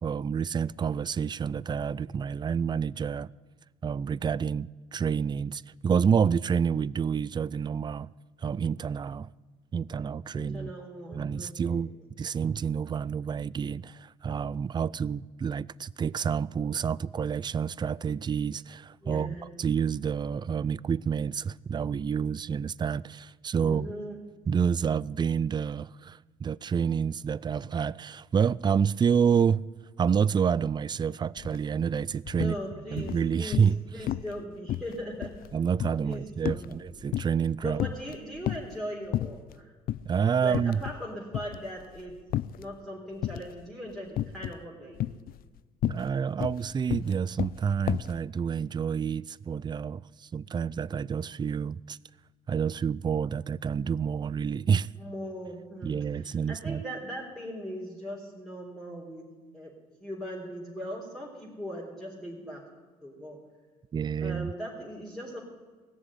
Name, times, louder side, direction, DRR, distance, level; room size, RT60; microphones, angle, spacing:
voice 1, 0.0-3.3 3.8-8.1 8.4-9.3 9.7-10.7 11.1-11.9 12.2-23.9 24.5-29.7 30.0-32.6 32.9-33.8 35.5-37.8 40.1-40.8 45.8-52.0 52.5-54.9 55.8-56.8 63.9-64.5, right 7 dB, 25° right, 0.4 m, -28 dB
voice 2, 10.3-11.9 19.0-19.5 23.6-24.2 32.3-35.3 36.0-36.9 37.6-39.7 40.4-42.2 42.6-45.2 55.0-59.3 59.5-59.7 60.0-62.6 63.0-63.4 64.2-65.4, equal, ahead, 3.7 m, -39 dB
sound 1, 31.4-31.6 31.9-32.6 33.0-33.8 34.1-34.4 34.7-37.5 37.8-38.8 39.1-39.6 39.9-40.1 40.5-41.1 41.3-42.7 43.2-43.6 44.2-44.6 45.0-48.2, left 13 dB, 60° left, 0.5 m, -32 dB
17.0 x 7.1 x 9.9 m
supercardioid pair, 75°, 17 cm